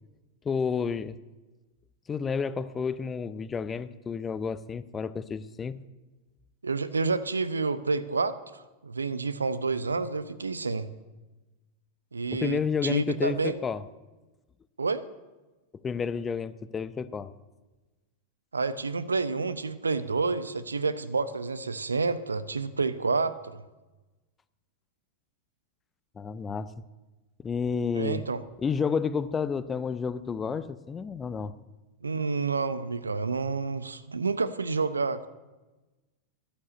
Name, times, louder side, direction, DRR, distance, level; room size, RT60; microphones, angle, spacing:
voice 1, 0.4-1.2 2.1-5.8 12.3-13.8 15.8-17.3 26.2-26.7 27.4-28.2 28.6-31.5, left 6 dB, 20° left, 15 dB, 0.7 m, -30 dB
voice 2, 6.6-10.9 12.1-13.5 14.8-15.0 18.5-23.6 27.9-28.4 32.0-35.3, right 4 dB, 75° right, 15 dB, 0.7 m, -29 dB
14.5 x 10.5 x 8.8 m, 1.2 s
figure-of-eight pair, 90°, 0 cm